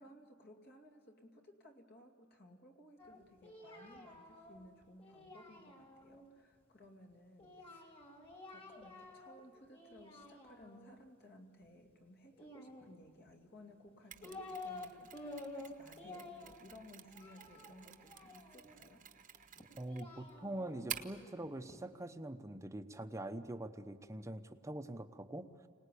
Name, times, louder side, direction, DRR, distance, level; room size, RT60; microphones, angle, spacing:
voice 1, 0.0-7.9 8.5-19.1, left 1 dB, 50° left, 3 dB, 2.5 m, -59 dB
Singing, 3.0-6.2 7.4-9.4 9.7-10.9 12.3-13.3 13.9-14.9 15.1-18.8 19.6-21.8, left 2 dB, 30° left, 3.1 m, -51 dB
Mechanisms, 14.1-21.3, right 9 dB, 40° right, 1.0 m, -51 dB
voice 2, 19.8-25.5, right 1 dB, 15° right, 8 dB, 0.9 m, -44 dB
25.5 x 19.0 x 8.4 m, 2.2 s
head